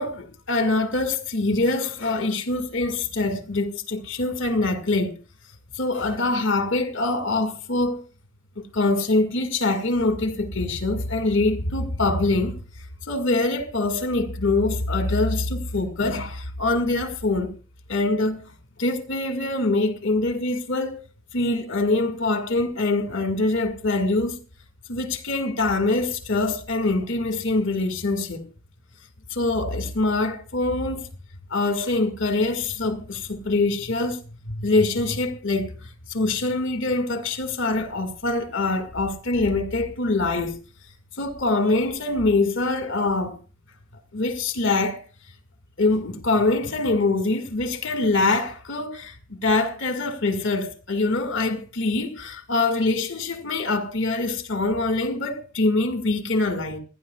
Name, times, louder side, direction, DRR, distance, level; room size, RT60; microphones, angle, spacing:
voice 1, 0.0-5.1 5.7-8.0 8.6-12.5 13.0-17.6 17.9-18.4 18.8-21.0 21.3-24.4 24.9-28.4 29.3-31.1 31.5-40.6 41.2-43.4 44.1-45.0 45.8-56.8, left 2 dB, 60° left, 2.0 m, -24 dB
28.5 x 10.5 x 2.4 m
head